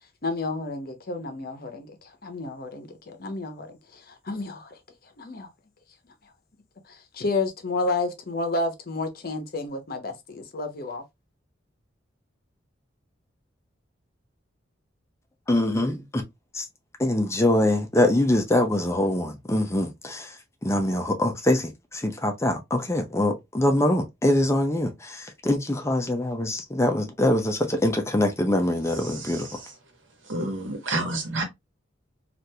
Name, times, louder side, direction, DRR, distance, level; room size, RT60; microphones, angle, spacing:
voice 1, 0.2-3.7 3.9-4.8 5.2-5.5 6.9-11.0, left 3 dB, 50° left, 0.7 m, -31 dB
voice 2, 15.5-16.2 16.5-16.7 17.0-20.4 20.6-29.5, left 1 dB, 15° left, 0.5 m, -24 dB
voice 3, 29.0-29.7 30.3-31.4, right 2 dB, 80° right, 1.1 m, -30 dB
3.4 x 2.5 x 2.7 m
head